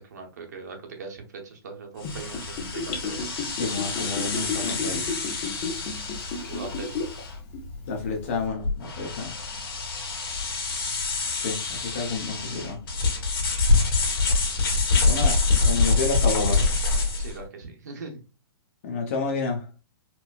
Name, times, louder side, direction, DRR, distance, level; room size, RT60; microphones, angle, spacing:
voice 1, 0.0-3.2 6.4-6.9 17.2-18.2, right 4 dB, 45° right, 0.7 m, -40 dB
sound 1, 2.0-17.4, left 3 dB, 60° left, 1.4 m, -26 dB
Gurgling / Bathtub (filling or washing), 2.0-7.2 7.5-7.6, left 4 dB, 10° left, 0.3 m, -32 dB
voice 2, 3.6-5.0 7.9-9.4 11.4-12.8 15.0-15.4 15.6-16.6 18.8-19.6, left 4 dB, 30° left, 0.7 m, -29 dB
4.4 x 2.0 x 2.2 m
hypercardioid pair, 175°, 13 cm